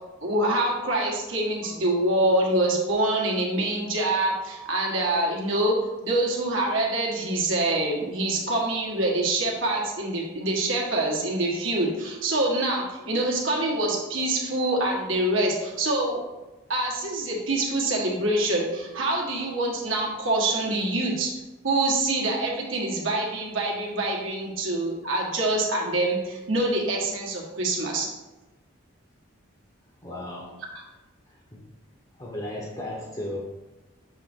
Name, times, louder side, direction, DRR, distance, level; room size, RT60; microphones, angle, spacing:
voice 1, 0.2-5.8 6.0-16.2 16.7-21.3 21.6-28.1, right 2 dB, 70° right, -2 dB, 1.4 m, -25 dB
voice 2, 30.0-30.6 31.5-31.6 32.2-33.4, left 1 dB, 20° left, -2 dB, 0.8 m, -35 dB
7.2 x 3.3 x 4.4 m, 1.1 s
head